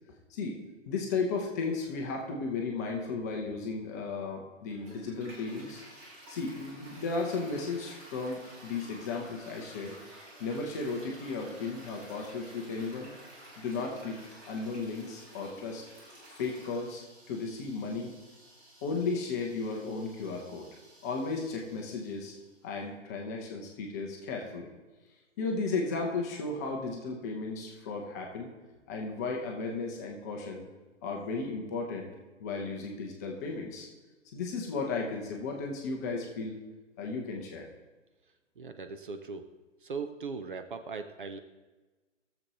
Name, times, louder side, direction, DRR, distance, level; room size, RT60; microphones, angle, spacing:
voice 1, 0.9-5.8 6.3-9.9 10.4-13.1 13.6-15.8 16.3-18.1 18.8-20.7 21.0-22.4 22.6-24.7 25.4-28.5 28.9-30.6 31.0-32.1 32.4-33.9 34.3-36.6 37.0-37.7, left 4 dB, 15° left, 1 dB, 0.6 m, -35 dB
Toilet flush, 4.6-22.6, right 1 dB, 25° right, 2.1 m, -52 dB
voice 2, 38.6-39.5 39.8-41.4, right 4 dB, 45° right, 8 dB, 0.6 m, -39 dB
17.0 x 7.0 x 2.9 m, 1.2 s
figure-of-eight pair, 130°, 38 cm